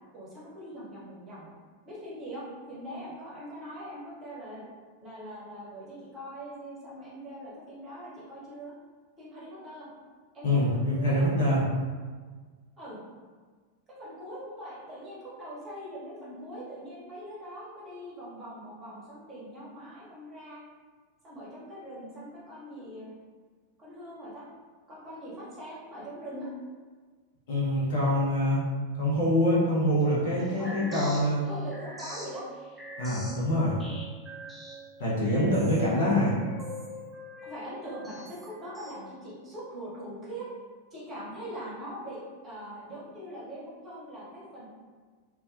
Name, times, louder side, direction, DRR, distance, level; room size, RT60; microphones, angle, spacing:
voice 1, 0.1-1.5 1.8-4.6 5.0-8.7 9.2-9.9 10.3-11.3 12.8-13.0 13.9-20.6 21.2-23.1 23.8-24.4 24.9-26.5 30.6-31.2 31.4-32.4 35.9-36.1 37.4-40.5 40.9-44.7, equal, 25° right, -7 dB, 0.9 m, -42 dB
voice 2, 10.4-11.6 27.5-28.6 29.0-31.4 33.0-33.8 35.0-36.3, left 1 dB, 55° left, -7 dB, 0.8 m, -25 dB
sound 1, 30.0-38.9, equal, 5° right, 0.5 m, -44 dB
2.3 x 2.1 x 2.5 m, 1.5 s
figure-of-eight pair, 90°, 0 cm